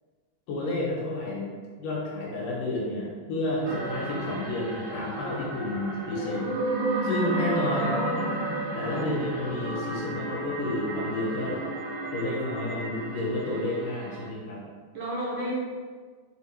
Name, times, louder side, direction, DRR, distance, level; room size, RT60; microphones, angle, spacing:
voice 1, 0.5-6.6 7.0-7.9 8.7-11.7 12.1-14.6, left 1 dB, 80° left, -3 dB, 2.7 m, -31 dB
sound 1, 3.6-14.3, right 1 dB, 60° right, 1.9 m, -32 dB
voice 2, 7.7-8.2 8.9-9.1 14.9-15.5, equal, 90° right, -6 dB, 1.1 m, -32 dB
5.7 x 4.1 x 4.5 m, 1.5 s
omnidirectional pair, 3.8 m